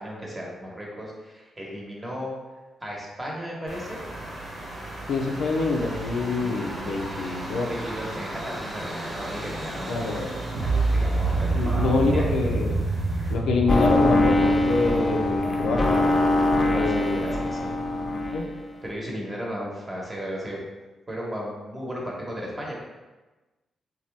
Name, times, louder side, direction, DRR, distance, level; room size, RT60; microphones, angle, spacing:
voice 1, 0.0-2.3 2.8-4.0 6.9-7.2 7.7-10.1 10.5-12.3 16.6-17.8 18.2-18.5 18.8-20.7 21.1-22.7, equal, 25° right, -3 dB, 1.0 m, -35 dB
sound 1, 3.7-13.3, right 1 dB, 50° right, 0.9 m, -36 dB
voice 2, 5.1-7.7 9.9-10.4 11.5-12.8 13.3-16.1 16.7-17.3 18.3-18.5, left 3 dB, 85° left, 1 dB, 0.4 m, -26 dB
sound 2, 10.5-16.6, right 3 dB, 80° right, 0.6 m, -27 dB
sound 3, 13.7-18.6, left 2 dB, 25° left, 0.5 m, -23 dB
2.7 x 2.2 x 3.2 m, 1.2 s
cardioid pair, 65°, 0 cm